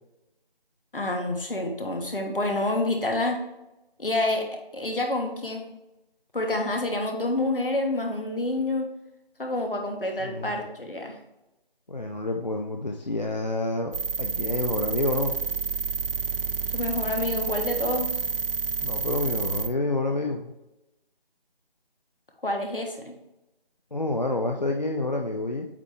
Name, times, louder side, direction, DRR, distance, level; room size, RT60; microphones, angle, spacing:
voice 1, 0.9-3.4 4.0-5.7 6.3-8.9 9.4-11.2 16.7-18.1 22.4-23.1, left 2 dB, 65° left, 3 dB, 1.4 m, -28 dB
voice 2, 10.2-10.6 11.9-15.4 18.8-20.5 23.9-25.7, left 2 dB, 45° left, 2 dB, 0.5 m, -28 dB
sound 1, 13.9-19.7, right 5 dB, 70° right, 0.5 m, -29 dB
8.3 x 3.3 x 3.5 m, 0.95 s
figure-of-eight pair, 170°, 30 cm